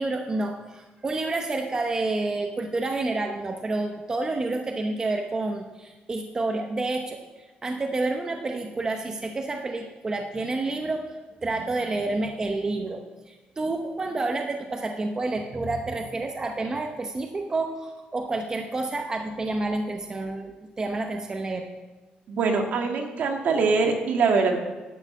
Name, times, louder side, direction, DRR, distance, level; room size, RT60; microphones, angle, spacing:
voice 1, 0.0-7.2 7.6-11.2 11.4-20.5 20.8-21.7, right 2 dB, 20° right, 3 dB, 0.8 m, -29 dB
voice 2, 22.3-24.6, right 4 dB, 60° right, 3 dB, 1.9 m, -23 dB
11.0 x 8.1 x 7.3 m, 1.2 s
cardioid pair, 150°, 3 cm